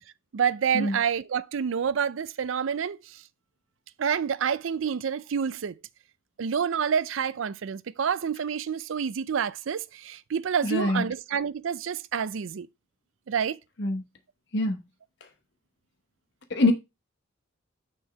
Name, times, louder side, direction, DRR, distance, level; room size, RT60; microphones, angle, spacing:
voice 1, 0.3-3.2 4.0-5.7 6.4-12.7 13.3-13.6, right 7 dB, 75° right, 0.4 m, -28 dB
voice 2, 10.6-11.0 13.8-14.0 14.5-14.8 16.5-16.7, left 2 dB, 60° left, 1.0 m, -24 dB
6.3 x 4.5 x 4.8 m
head